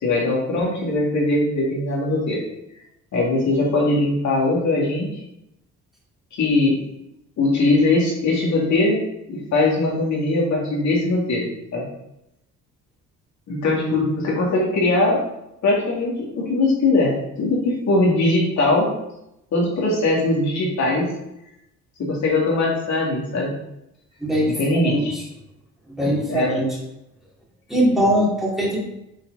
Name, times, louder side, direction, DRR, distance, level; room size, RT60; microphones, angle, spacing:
voice 1, 0.0-2.4 3.1-5.1 6.3-6.8 7.4-9.0 9.3-11.9 13.5-15.2 15.6-18.9 19.5-21.1 22.0-23.5 24.5-25.1 26.0-26.7, left 2 dB, 70° left, -3 dB, 2.3 m, -21 dB
voice 2, 24.2-25.2 25.9-26.8 27.7-28.8, equal, ahead, -4 dB, 2.5 m, -21 dB
7.6 x 4.5 x 3.9 m, 0.84 s
cardioid pair, 90°, 30 cm